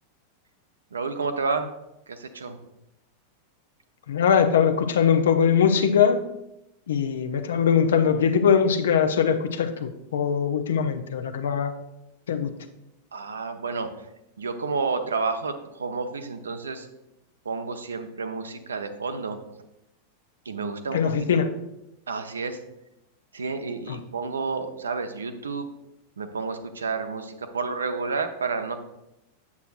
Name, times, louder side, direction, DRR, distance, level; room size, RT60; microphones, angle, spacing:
voice 1, 0.9-1.7 2.1-2.6 13.1-14.1 14.4-16.9 17.4-19.4 20.4-21.3 22.1-22.6 23.3-25.7 26.2-28.8, right 4 dB, 70° right, 8 dB, 0.7 m, -30 dB
voice 2, 4.1-6.2 6.9-11.7 12.3-12.5 20.9-21.5 23.9-24.0, left 7 dB, 65° left, 7 dB, 0.6 m, -21 dB
8.3 x 7.7 x 2.5 m, 0.88 s
figure-of-eight pair, 90°, 0 cm